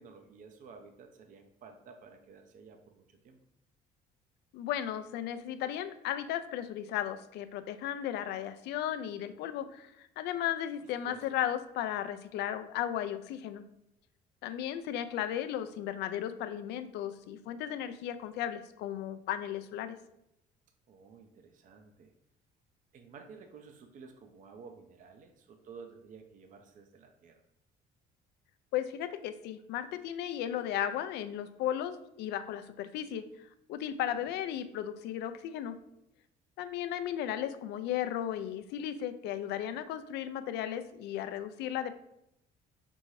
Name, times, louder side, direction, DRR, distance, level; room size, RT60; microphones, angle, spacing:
voice 1, 0.0-3.4 11.0-11.2 20.9-22.1 22.9-27.4 34.1-34.3, right 5 dB, 50° right, 6 dB, 0.5 m, -52 dB
voice 2, 4.5-13.6 14.4-19.9 28.7-33.2 33.7-35.8 36.6-42.0, left 10 dB, 80° left, 10 dB, 0.4 m, -35 dB
5.3 x 2.7 x 3.0 m, 0.82 s
cardioid pair, 110°, 17 cm